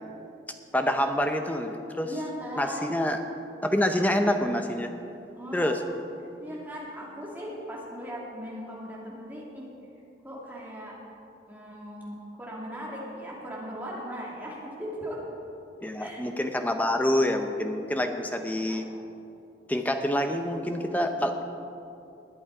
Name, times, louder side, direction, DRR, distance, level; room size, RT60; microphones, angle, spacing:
voice 1, 0.7-2.1 2.6-3.2 3.6-4.9 5.5-5.8 15.8-18.9 19.7-21.4, left 1 dB, 10° left, 5 dB, 0.7 m, -27 dB
voice 2, 2.0-2.9 5.4-5.8 6.4-9.7 10.2-11.0 11.5-15.2 16.0-16.2 18.3-18.8 20.6-21.2, equal, 10° right, -5 dB, 2.6 m, -39 dB
20.5 x 8.5 x 4.9 m, 2.7 s
head